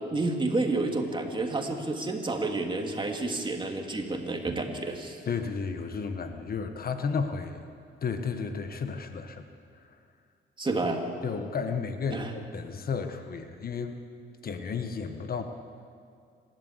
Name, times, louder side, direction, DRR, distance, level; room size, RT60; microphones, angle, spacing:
voice 1, 0.1-5.2 10.6-11.0 12.1-12.3, right 2 dB, 25° right, 2 dB, 2.7 m, -30 dB
voice 2, 5.2-7.6 8.0-9.5 9.7-10.0 11.2-14.0 14.4-15.4, left 5 dB, 50° left, 7 dB, 1.4 m, -33 dB
26.5 x 12.0 x 8.2 m, 2.3 s
cardioid pair, 90°, 20 cm